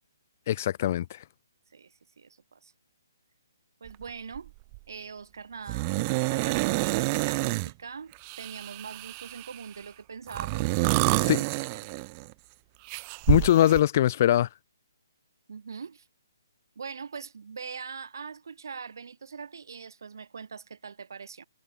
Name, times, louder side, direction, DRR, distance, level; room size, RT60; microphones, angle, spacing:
voice 1, 0.5-1.2 11.3-11.4 13.3-14.5, left 12 dB, 40° left, 2.7 m, -22 dB
voice 2, 1.7-2.7 3.8-4.5 4.9-11.4 11.7-11.8 15.5-16.1 16.8-21.5, right 6 dB, 70° right, 5.9 m, -42 dB
sound 1, 3.9-4.0 4.3-4.8 5.7-7.7 8.2-9.6 10.3-12.3 12.9-13.8, right 29 dB, 25° right, 0.6 m, -28 dB
hypercardioid pair, 155°, 2 cm